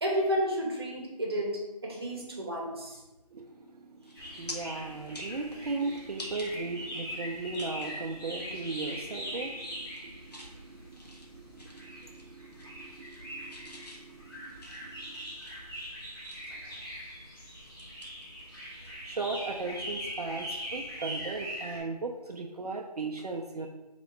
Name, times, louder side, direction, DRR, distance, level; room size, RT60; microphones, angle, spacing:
voice 1, 0.0-3.0, equal, 40° right, -2 dB, 0.9 m, -31 dB
voice 2, 3.3-15.4 18.8-23.7, right 3 dB, 70° right, 1 dB, 0.4 m, -38 dB
sound 1, 3.5-3.7 4.0-4.6 5.0-6.5 6.9-7.0 7.5-8.0 8.5-8.7 9.0-9.4 9.8-10.5 10.9-12.3 12.5-13.2 13.5-16.7 17.1-18.9 19.2-19.4 21.3-21.4, left 2 dB, 85° left, 1.0 m, -48 dB
sound 2, 4.2-21.8, equal, 35° left, 1.1 m, -42 dB
3.9 x 3.0 x 3.2 m, 1.1 s
figure-of-eight pair, 170°, 20 cm